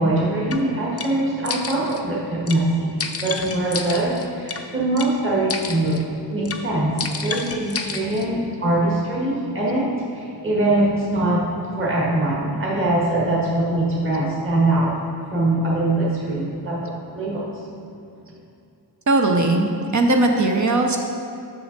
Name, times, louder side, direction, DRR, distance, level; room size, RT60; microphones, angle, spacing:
voice 1, 0.0-6.0 6.3-11.5 11.8-14.9 15.3-16.9 17.1-17.5, right 1 dB, 30° right, -6 dB, 1.6 m, -22 dB
sound 1, 0.5-0.6 1.0-1.1 1.4-2.0 2.5-2.6 3.0-4.6 5.0-5.1 5.5-6.0 6.4-6.6 7.0-8.3, left 5 dB, 35° left, 0.5 m, -30 dB
voice 2, 19.1-21.0, right 2 dB, 45° right, 3 dB, 0.6 m, -19 dB
6.8 x 6.2 x 3.9 m, 2.6 s
wide cardioid pair, 100°, 42 cm